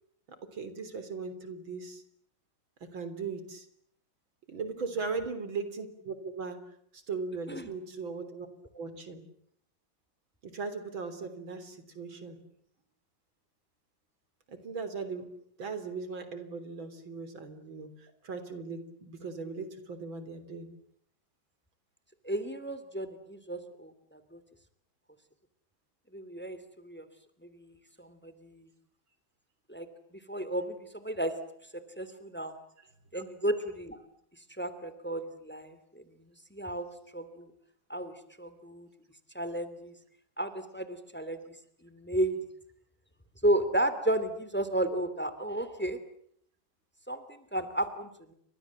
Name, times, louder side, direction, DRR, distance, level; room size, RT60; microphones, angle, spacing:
voice 1, 0.5-2.0 2.8-3.7 4.5-6.6 6.9-8.5 8.8-9.2 10.4-12.4 14.5-15.3 15.6-20.7 33.1-33.2, right 4 dB, 90° right, 11 dB, 4.3 m, -38 dB
voice 2, 22.2-24.4 26.1-26.6 26.8-27.1 27.4-28.7 29.7-31.3 31.7-32.6 33.1-34.0 34.6-36.0 36.5-36.8 37.1-37.5 37.9-38.9 39.3-39.9 40.4-41.4 41.8-42.4 43.4-46.0 47.1-48.3, right 1 dB, 5° left, 12 dB, 2.8 m, -33 dB
30.0 x 25.5 x 7.5 m, 0.69 s
omnidirectional pair, 2.1 m